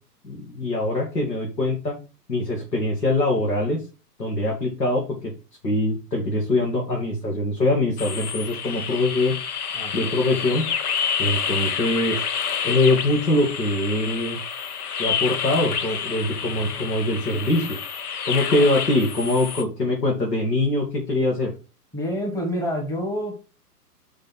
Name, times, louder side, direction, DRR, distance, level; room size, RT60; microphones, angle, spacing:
voice 1, 0.2-2.0 2.3-3.8 4.2-5.3 5.6-9.3 9.9-10.6 11.2-12.2 12.6-14.4 15.0-17.8 18.2-21.5, left 2 dB, 85° left, -1 dB, 2.5 m, -23 dB
sound 1, 8.0-19.6, left 7 dB, 65° left, 1.1 m, -28 dB
voice 2, 9.7-10.1 21.9-23.4, equal, 5° left, 2 dB, 1.5 m, -28 dB
5.4 x 5.1 x 5.9 m, 0.33 s
hypercardioid pair, 125°, 48 cm